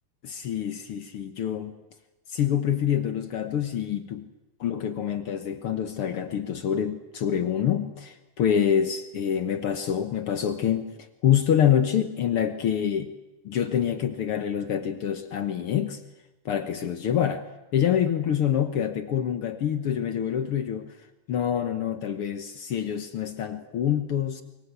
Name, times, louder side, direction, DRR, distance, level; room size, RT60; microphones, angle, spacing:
voice 1, 0.2-1.8 2.3-4.3 4.6-13.1 13.4-16.0 16.4-17.5 17.7-20.9 21.3-24.4, left 9 dB, 60° left, 9 dB, 1.5 m, -26 dB
24.5 x 22.5 x 8.2 m, 1.0 s
omnidirectional pair, 3.7 m